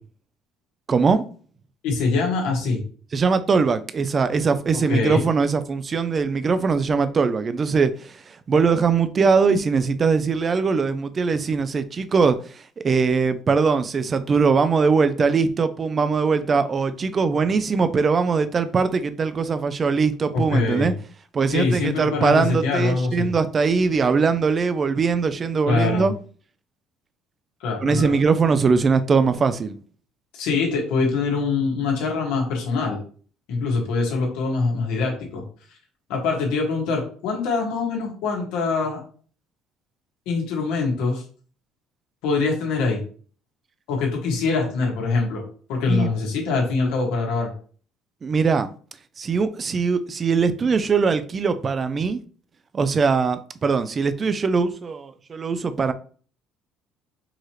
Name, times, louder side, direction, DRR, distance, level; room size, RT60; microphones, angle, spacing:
voice 1, 0.9-1.2 3.1-20.9 21.3-26.1 27.8-29.8 45.9-46.1 48.2-48.7 49.2-52.2 52.7-55.9, right 5 dB, 25° right, 0.4 m, -21 dB
voice 2, 1.8-2.8 4.9-5.2 20.3-20.9 21.5-23.3 25.7-26.1 27.6-28.2 30.3-33.0 33.5-35.4 36.1-39.0 40.2-41.2 42.2-43.0 43.9-45.4 45.7-47.5, left 4 dB, 80° left, 1.5 m, -23 dB
4.7 x 3.0 x 3.1 m
cardioid pair, 145°, 0 cm